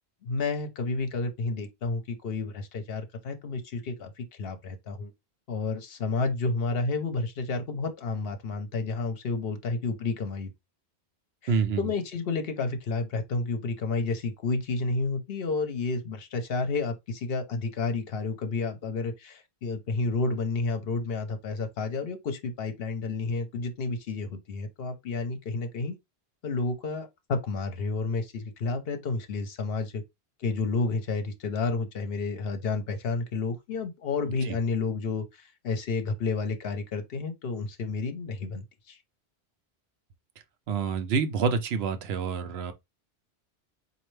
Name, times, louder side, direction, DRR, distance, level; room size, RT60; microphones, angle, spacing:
voice 1, 0.2-5.1 5.5-10.5 11.4-26.0 26.4-30.0 30.4-39.0, left 3 dB, 65° left, 1.0 m, -31 dB
voice 2, 11.5-11.8 40.7-42.7, right 5 dB, 70° right, 0.9 m, -27 dB
4.3 x 2.6 x 3.2 m
omnidirectional pair, 1.1 m